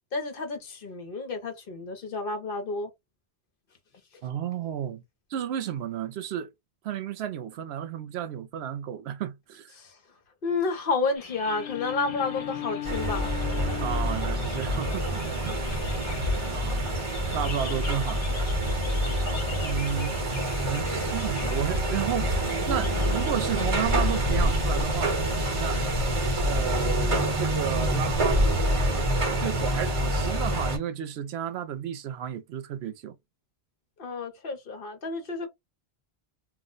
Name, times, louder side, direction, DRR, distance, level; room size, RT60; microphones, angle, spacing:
voice 1, 0.1-2.9 9.7-10.0 10.4-13.6 34.0-35.5, left 3 dB, 60° left, 1.0 m, -31 dB
voice 2, 4.2-5.0 5.3-6.5 6.8-9.7 13.8-15.8 16.1-16.8 17.3-18.4 19.6-20.2 20.7-22.3 22.7-25.2 25.6-25.8 26.4-33.2, right 9 dB, 80° right, 0.8 m, -33 dB
sound 1, 11.1-25.9, left 5 dB, 45° left, 0.6 m, -43 dB
Bowed string instrument, 11.4-14.5, left 12 dB, 85° left, 0.9 m, -37 dB
sound 2, 12.8-30.8, right 1 dB, 35° right, 0.9 m, -26 dB
2.4 x 2.1 x 3.7 m
omnidirectional pair, 1.1 m